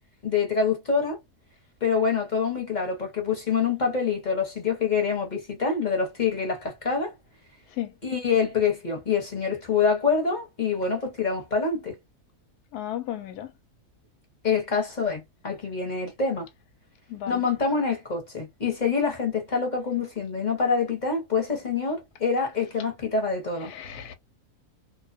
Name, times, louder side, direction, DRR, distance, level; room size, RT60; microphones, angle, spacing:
voice 1, 0.2-1.2 1.8-7.1 8.0-12.0 14.4-16.5 17.3-23.7, left 5 dB, 35° left, 0.8 m, -26 dB
voice 2, 12.7-13.5 17.1-17.4 23.6-24.1, left 11 dB, 90° left, 1.1 m, -34 dB
2.6 x 2.2 x 2.4 m
omnidirectional pair, 1.6 m